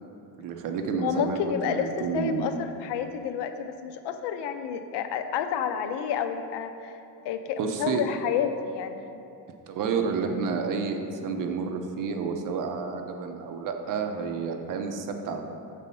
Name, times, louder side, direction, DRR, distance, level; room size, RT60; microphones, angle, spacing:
voice 1, 0.4-2.4 7.6-8.0 9.7-15.4, right 5 dB, 50° right, 5 dB, 0.6 m, -30 dB
voice 2, 1.0-7.0 7.2-9.2, left 8 dB, 85° left, 8 dB, 0.6 m, -30 dB
7.0 x 4.1 x 5.4 m, 2.6 s
cardioid pair, 160°, 40 cm